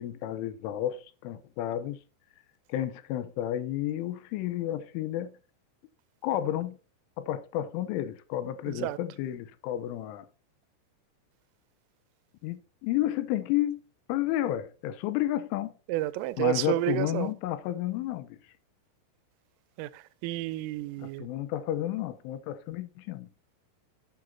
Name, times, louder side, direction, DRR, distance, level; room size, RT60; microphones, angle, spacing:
voice 1, 0.0-2.0 2.7-5.4 6.2-6.8 7.2-10.3 12.4-13.8 14.1-15.7 16.4-18.4 21.0-23.3, left 13 dB, 80° left, 3.1 m, -31 dB
voice 2, 8.7-9.0 15.9-17.3 19.8-21.3, right 16 dB, 90° right, 3.2 m, -30 dB
11.5 x 8.7 x 2.7 m
omnidirectional pair, 5.8 m